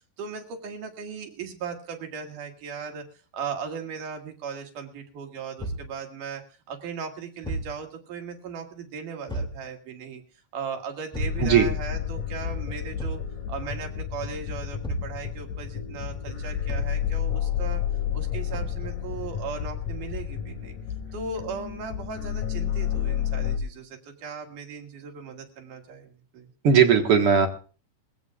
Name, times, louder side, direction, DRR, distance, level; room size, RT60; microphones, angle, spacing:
voice 1, 0.2-3.1 3.3-10.2 10.5-13.2 13.5-17.8 18.1-20.8 21.1-26.5, right 5 dB, 80° right, 3 dB, 3.5 m, -37 dB
Thump thud, 5.6-5.9 7.4-7.8 9.3-9.6 11.1-11.5 13.0-13.3 14.8-15.2 16.7-17.0 18.5-18.9, right 1 dB, ahead, 1.9 m, -32 dB
sound 1, 11.2-23.6, left 9 dB, 75° left, 3.5 m, -31 dB
voice 2, 26.6-27.5, right 7 dB, 50° right, 3 dB, 2.2 m, -18 dB
22.5 x 16.5 x 2.4 m, 0.38 s
omnidirectional pair, 3.7 m